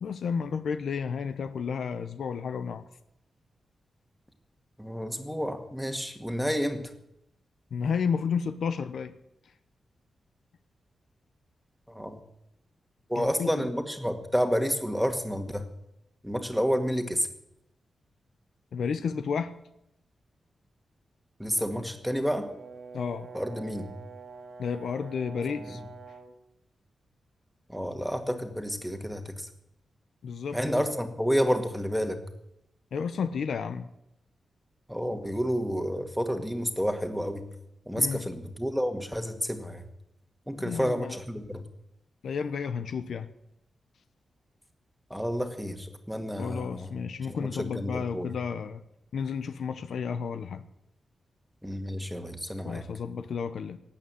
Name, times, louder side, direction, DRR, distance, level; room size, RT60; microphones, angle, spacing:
voice 1, 0.0-2.8 7.7-9.1 13.1-13.7 18.7-19.5 22.9-23.3 24.6-25.8 30.2-30.8 32.9-33.9 38.0-38.3 40.6-41.2 42.2-43.3 46.4-48.8 49.1-50.6 52.6-53.8, left 6 dB, 75° left, 11 dB, 1.0 m, -32 dB
voice 2, 4.8-6.9 11.9-12.2 13.1-15.6 16.2-17.3 21.4-22.5 23.3-23.9 25.7-25.8 27.7-29.5 30.5-32.2 34.9-37.5 37.9-39.8 40.5-41.6 45.1-47.0 47.3-48.3 51.6-52.8, equal, ahead, 6 dB, 1.9 m, -30 dB
Brass instrument, 22.1-26.4, right 5 dB, 50° right, 1.9 m, -46 dB
18.0 x 8.9 x 9.1 m, 0.83 s
wide cardioid pair, 110°, 0 cm